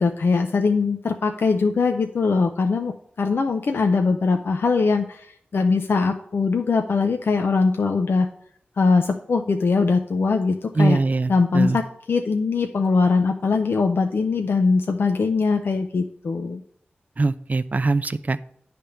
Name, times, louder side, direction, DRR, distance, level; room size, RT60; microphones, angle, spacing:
voice 1, 0.0-8.3 8.8-11.0 11.3-16.6, left 4 dB, 75° left, 4 dB, 0.5 m, -21 dB
voice 2, 10.8-11.8 17.2-18.4, right 3 dB, 45° right, 13 dB, 0.4 m, -22 dB
10.0 x 3.4 x 6.9 m, 0.68 s
wide cardioid pair, 60°, 4 cm